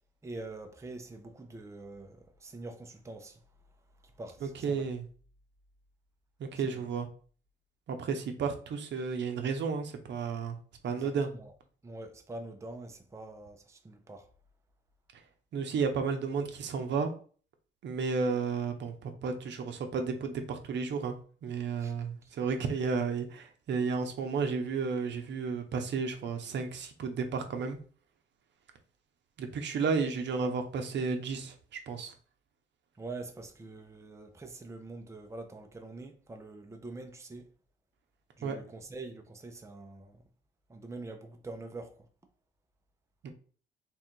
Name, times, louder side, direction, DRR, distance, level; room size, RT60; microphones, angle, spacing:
voice 1, 0.2-3.4 4.2-4.9 6.5-6.8 10.9-11.5 11.8-14.3 21.8-21.9 33.0-37.5 38.4-40.2 40.7-42.0, right 2 dB, 15° right, 0.6 m, -45 dB
voice 2, 4.4-5.0 6.4-7.1 7.9-10.6 10.8-11.3 15.5-17.1 17.8-21.1 21.4-27.8 29.4-31.5 31.9-32.1 38.4-38.6 43.2-43.3, right 5 dB, 65° right, 0.8 m, -32 dB
3.5 x 2.5 x 4.5 m
cardioid pair, 90°, 20 cm